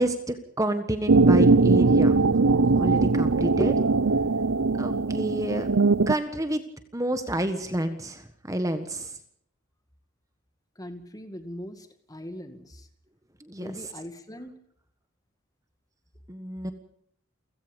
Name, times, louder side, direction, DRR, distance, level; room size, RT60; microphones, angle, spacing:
voice 1, 0.0-2.2 2.5-3.9 4.8-5.7 6.1-6.6 6.9-9.2 13.4-13.9 16.3-16.7, right 1 dB, 15° right, 9 dB, 1.5 m, -29 dB
sound 1, 1.1-6.1, right 3 dB, 80° right, 0.7 m, -20 dB
voice 2, 10.8-12.9 13.6-14.5, equal, 20° left, 8 dB, 2.2 m, -41 dB
29.5 x 16.5 x 5.4 m, 0.67 s
head